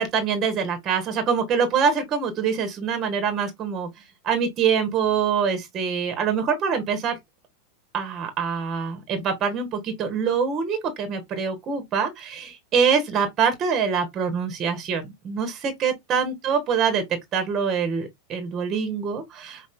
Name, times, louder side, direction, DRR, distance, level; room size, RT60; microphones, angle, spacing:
voice 1, 0.0-3.9 4.2-7.2 7.9-17.0 17.3-19.6, right 6 dB, 30° right, 1.3 m, -24 dB
5.3 x 2.7 x 2.5 m
figure-of-eight pair, 90°, 0 cm